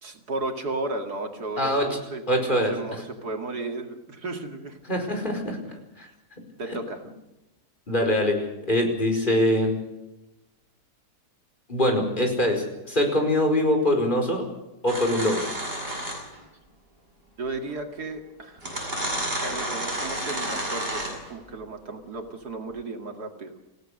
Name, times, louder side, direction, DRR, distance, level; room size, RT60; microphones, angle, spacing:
voice 1, 0.0-4.8 6.6-7.0 17.4-18.7 19.4-23.5, right 2 dB, 85° right, 4 dB, 2.8 m, -34 dB
voice 2, 1.6-1.9 2.3-2.7 4.9-5.6 6.0-6.1 7.9-9.8 11.7-14.5 14.8-15.5, left 1 dB, 30° left, 2 dB, 5.0 m, -23 dB
sound 1, 14.9-16.4 17.7-17.8 18.6-21.3, right 1 dB, 35° right, 7.0 m, -30 dB
28.5 x 16.5 x 6.6 m, 0.97 s
omnidirectional pair, 1.7 m